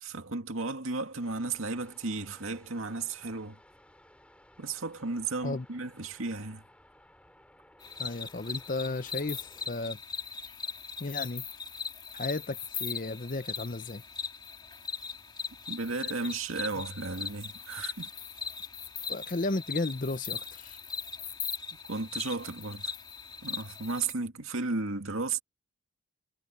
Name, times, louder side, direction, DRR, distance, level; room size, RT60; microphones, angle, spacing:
voice 1, 0.0-3.6 4.6-6.6 15.7-18.1 21.9-22.8 23.4-25.4, right 3 dB, 75° right, 2.3 m, -34 dB
sound 1, 1.2-9.7, left 1 dB, 5° left, 4.9 m, -59 dB
sound 2, 7.8-24.1, left 6 dB, 20° left, 2.9 m, -39 dB
voice 2, 8.0-10.0 11.0-11.4 12.1-14.0 16.8-16.9 19.1-20.8, left 2 dB, 40° left, 0.8 m, -34 dB
head